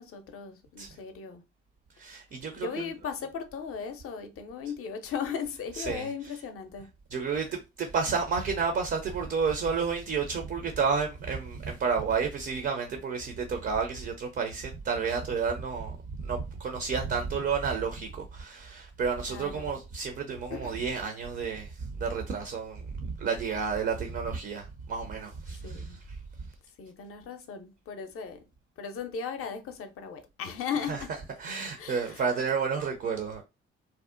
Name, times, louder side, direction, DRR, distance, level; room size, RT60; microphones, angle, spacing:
voice 1, 0.0-1.4 2.6-6.9 19.3-19.8 20.5-20.8 25.5-26.0 26.8-28.4 28.8-31.1 31.8-32.2, left 6 dB, 45° left, 0.6 m, -37 dB
voice 2, 2.0-2.9 5.7-6.4 7.1-26.2 30.9-31.0 31.4-33.4, right 5 dB, 30° right, 0.4 m, -31 dB
2.5 x 2.1 x 2.4 m
figure-of-eight pair, 45°, 33 cm